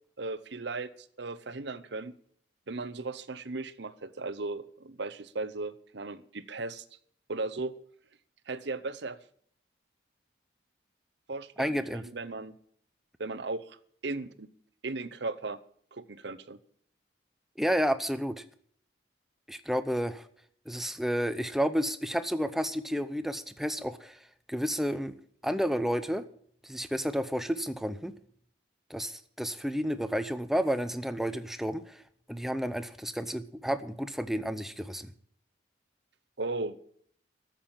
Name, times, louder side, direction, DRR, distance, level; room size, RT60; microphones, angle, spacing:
voice 1, 0.2-2.1 2.7-6.8 7.3-7.7 8.5-9.2 11.3-12.6 13.2-14.5 14.8-15.6 15.9-16.6 36.4-36.8, right 3 dB, 60° right, 15 dB, 0.8 m, -36 dB
voice 2, 11.6-12.0 17.6-18.4 19.5-20.3 20.7-24.2 24.5-25.1 25.4-26.2 26.6-28.1 28.9-32.0 32.3-35.1, equal, ahead, 12 dB, 0.6 m, -31 dB
13.5 x 7.6 x 8.7 m, 0.62 s
head